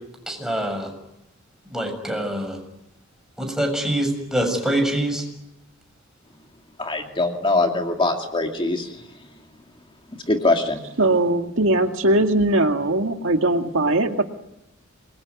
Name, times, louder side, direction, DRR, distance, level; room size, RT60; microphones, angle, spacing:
voice 1, 0.3-0.9 1.7-2.6 3.4-5.2, right 1 dB, 5° right, 3 dB, 7.0 m, -24 dB
voice 2, 6.8-9.0 10.3-10.8, left 2 dB, 25° left, 3 dB, 2.5 m, -22 dB
voice 3, 11.0-14.2, right 2 dB, 70° right, 5 dB, 2.1 m, -20 dB
27.5 x 22.0 x 9.6 m, 0.83 s
head